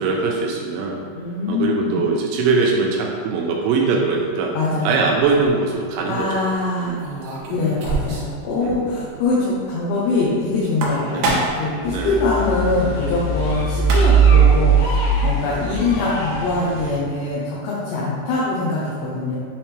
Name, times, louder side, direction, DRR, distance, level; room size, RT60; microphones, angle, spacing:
voice 1, 0.0-1.0 1.5-4.5 4.8-6.4 6.8-7.0 8.6-9.0 11.1-11.3 11.9-12.2, right 4 dB, 85° right, 0 dB, 2.6 m, -21 dB
voice 2, 1.1-2.0 4.5-4.9 6.0-7.0 7.5-11.3 11.6-15.0 15.2-19.4, left 3 dB, 90° left, -6 dB, 3.0 m, -23 dB
sound 1, 5.2-5.5 7.0-8.4 8.7-8.8 9.1-9.2 10.6-11.7 13.5-13.6 13.8-14.4, right 2 dB, 70° right, 2.3 m, -25 dB
sound 2, 10.9-12.3 12.8-16.5, left 2 dB, 70° left, 2.8 m, -33 dB
sound 3, 11.8-17.0, right 5 dB, 50° left, 2.3 m, -19 dB
8.6 x 3.5 x 3.2 m, 2.2 s
omnidirectional pair, 4.7 m